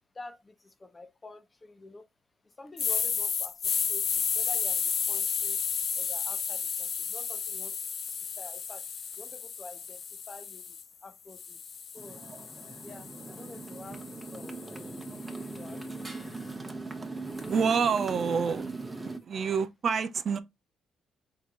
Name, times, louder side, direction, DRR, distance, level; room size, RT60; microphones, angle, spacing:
voice 1, 0.1-2.1 2.4-5.6 5.9-7.9 8.2-8.9 9.2-11.6 11.9-12.2 12.8-14.6 15.3-16.2, left 2 dB, 25° left, 0.7 m, -49 dB
sound 1, 2.8-10.8 11.3-15.5, left 7 dB, 55° left, 0.5 m, -33 dB
Motorcycle, 12.0-19.2, right 3 dB, 20° right, 0.9 m, -40 dB
voice 2, 17.5-18.7 19.2-20.4, right 6 dB, 50° right, 0.5 m, -27 dB
4.4 x 3.8 x 2.5 m
cardioid pair, 90°, 0 cm